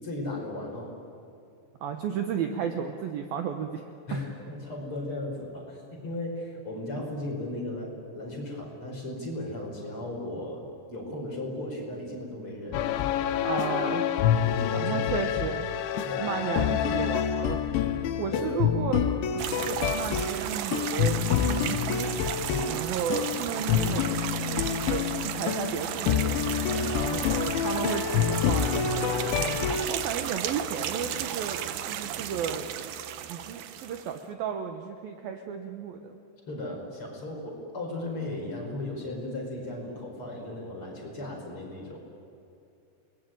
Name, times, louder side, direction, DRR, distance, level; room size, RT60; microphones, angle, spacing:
voice 1, 0.0-0.9 4.1-13.0 14.4-15.3 16.0-16.3 18.3-18.6 22.5-22.8 26.7-27.2 36.5-42.0, left 1 dB, 30° left, -1 dB, 5.8 m, -36 dB
voice 2, 1.8-3.9 13.4-14.0 14.7-17.6 18.2-22.1 22.7-26.5 26.9-31.6 31.8-32.7 33.3-36.2, right 7 dB, 70° right, 6 dB, 2.5 m, -34 dB
sound 1, 12.7-29.9, left 8 dB, 80° left, 3.4 m, -27 dB
sound 2, 19.4-34.2, right 10 dB, 85° right, 1.8 m, -34 dB
29.5 x 21.0 x 9.2 m, 2.6 s
omnidirectional pair, 5.3 m